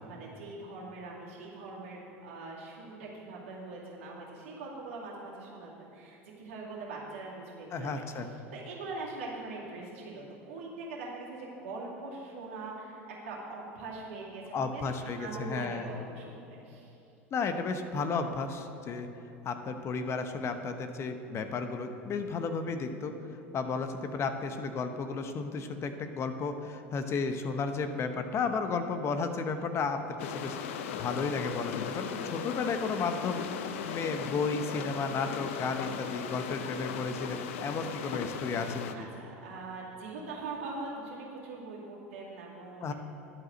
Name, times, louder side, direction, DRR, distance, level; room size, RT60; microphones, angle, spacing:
voice 1, 0.0-16.9 31.9-32.5 38.9-42.9, right 3 dB, 80° right, -4 dB, 2.3 m, -42 dB
voice 2, 7.7-8.3 14.5-15.9 17.3-19.1 19.4-23.1 23.5-39.1 42.8-42.9, left 4 dB, 40° left, 8 dB, 0.8 m, -33 dB
sound 1, 30.2-38.9, left 7 dB, 75° left, 0.5 m, -37 dB
Glass, 34.4-38.9, left 5 dB, 60° right, 1.9 m, -56 dB
11.0 x 4.9 x 7.7 m, 2.8 s
hypercardioid pair, 80°, 7 cm